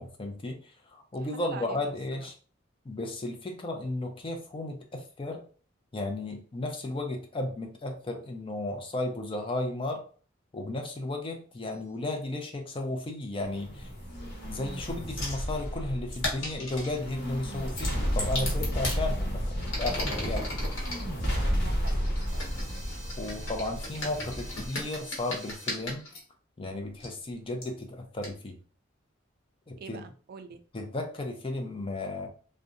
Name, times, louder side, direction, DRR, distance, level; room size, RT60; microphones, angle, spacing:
voice 1, 0.0-2.4 2.8-5.4 5.9-10.0 10.5-13.9 14.2-20.5 23.2-26.1 26.6-28.6 29.7-30.0 30.7-32.3, left 2 dB, 25° left, 0.5 m, -34 dB
voice 2, 1.3-1.9 2.2-2.3 21.6-22.7 29.8-30.6, right 6 dB, 50° right, 0.3 m, -45 dB
sound 1, 11.5-12.0 15.6-16.0 16.4-16.6 17.1-17.4 22.2-25.8, right 1 dB, 30° right, 1.2 m, -50 dB
sound 2, 13.4-24.7, equal, 55° left, 0.9 m, -32 dB
sound 3, 15.2-15.4 16.1-17.0 17.7-19.0 19.6-21.0 21.8-26.2 27.0-27.1 27.6-27.7 28.2-28.3, left 1 dB, 85° left, 1.1 m, -36 dB
2.7 x 2.1 x 2.4 m
head